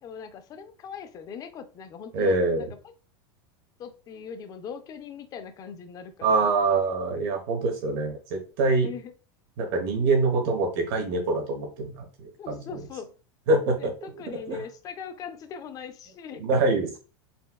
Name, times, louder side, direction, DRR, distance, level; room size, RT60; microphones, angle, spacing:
voice 1, 0.0-2.7 3.8-6.8 8.7-9.1 12.4-13.1 13.8-13.9 14.2-16.4, left 6 dB, 30° left, 8 dB, 0.4 m, -40 dB
voice 2, 2.1-2.7 6.2-8.9 9.6-12.8 13.5-13.9 14.5-14.6 16.3-17.0, right 3 dB, 60° right, 3 dB, 1.1 m, -25 dB
4.2 x 2.2 x 2.2 m, 0.35 s
supercardioid pair, 140°, 13 cm